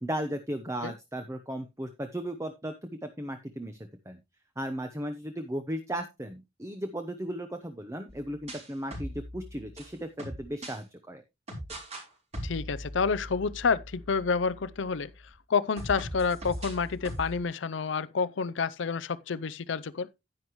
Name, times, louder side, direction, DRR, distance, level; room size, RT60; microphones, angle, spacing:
voice 1, 0.0-3.8 4.1-4.2 4.6-11.2, right 1 dB, 15° right, 0.8 m, -36 dB
sound 1, 8.1-10.8 11.5-12.0 12.3-15.3 15.8-17.4, equal, 35° right, 4.1 m, -41 dB
voice 2, 12.4-15.1 15.5-20.1, left 5 dB, 75° left, 0.5 m, -29 dB
10.5 x 9.5 x 3.1 m
head